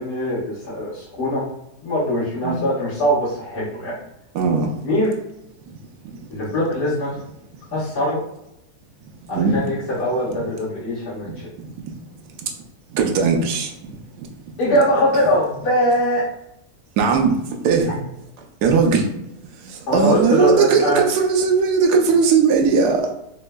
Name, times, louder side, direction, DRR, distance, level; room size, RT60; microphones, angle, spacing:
voice 1, 0.0-1.4 1.8-3.9 4.8-5.1 6.3-7.1 7.7-8.2 9.3-11.3 14.6-16.2 19.9-21.0, equal, 70° left, -11 dB, 2.0 m, -21 dB
voice 2, 4.3-4.7 9.3-9.6 11.2-11.7 12.9-14.3 17.0-17.4 17.6-17.9 18.6-19.1 19.6-23.1, right 5 dB, 85° right, 2 dB, 1.1 m, -18 dB
4.1 x 2.7 x 2.2 m, 0.79 s
omnidirectional pair, 1.7 m